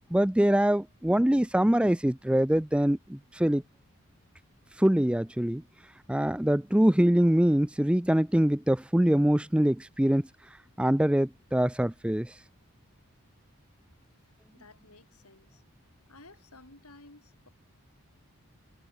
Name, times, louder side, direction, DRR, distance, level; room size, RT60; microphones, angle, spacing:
voice 1, 0.1-3.6 4.8-5.6 6.1-10.3 10.8-12.3, right 1 dB, 5° right, 0.4 m, -24 dB
voice 2, 14.2-15.6 16.1-17.5, left 2 dB, 85° left, 6.0 m, -55 dB
head